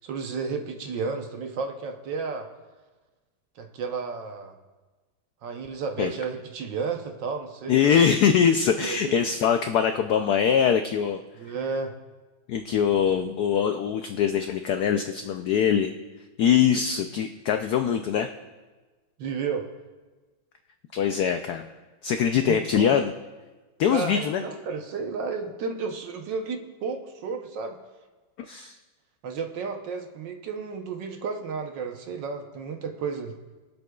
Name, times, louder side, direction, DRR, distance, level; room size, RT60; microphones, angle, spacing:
voice 1, 0.0-2.5 3.6-4.5 5.4-8.0 8.8-9.1 11.4-11.9 19.2-19.7 22.5-22.9 23.9-27.8 29.2-33.3, right 5 dB, 65° right, 4 dB, 1.4 m, -32 dB
voice 2, 7.7-11.2 11.5-11.6 12.5-15.9 16.4-18.3 20.9-21.7 22.0-23.1 23.8-24.4 28.4-28.7, left 8 dB, 90° left, 7 dB, 0.8 m, -23 dB
22.5 x 7.9 x 2.3 m, 1.3 s
omnidirectional pair, 2.3 m